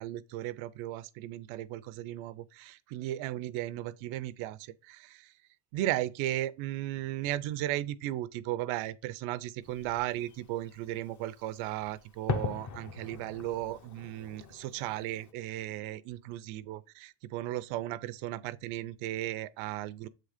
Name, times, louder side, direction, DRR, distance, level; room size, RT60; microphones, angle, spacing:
voice 1, 0.0-5.3 5.7-20.1, right 14 dB, 85° right, 0.6 m, -36 dB
Fireworks, 9.6-15.3, left 5 dB, 40° left, 0.7 m, -41 dB
7.7 x 3.9 x 5.0 m
cardioid pair, 100°, 47 cm